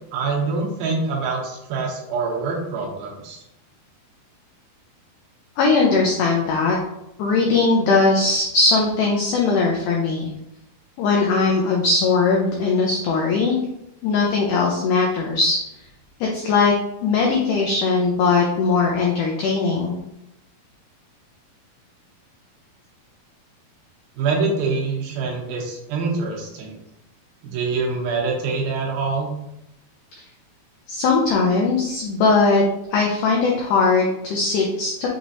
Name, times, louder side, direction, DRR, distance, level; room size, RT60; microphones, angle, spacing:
voice 1, 0.1-3.4 24.2-26.8 27.4-29.3, right 4 dB, 80° right, -1 dB, 2.6 m, -25 dB
voice 2, 5.6-6.8 7.2-10.3 11.0-13.6 14.0-15.6 16.2-16.7 17.0-20.0 30.9-32.6 32.9-35.1, left 4 dB, 85° left, -1 dB, 1.8 m, -19 dB
6.3 x 3.0 x 2.7 m, 0.85 s
omnidirectional pair, 4.4 m